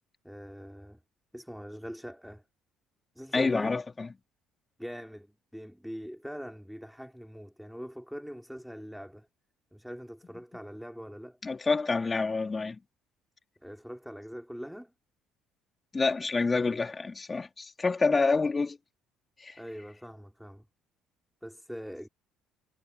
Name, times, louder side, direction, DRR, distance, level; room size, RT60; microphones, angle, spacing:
voice 1, 0.2-1.0 1.3-2.4 3.1-3.8 4.8-9.3 9.7-11.4 13.6-14.9 19.5-20.7 21.4-22.1, equal, ahead, 4.9 m, -42 dB
voice 2, 3.3-3.8 11.4-12.8 15.9-18.8 19.4-19.5, left 4 dB, 25° left, 3.5 m, -27 dB
supercardioid pair, 75°, 0 cm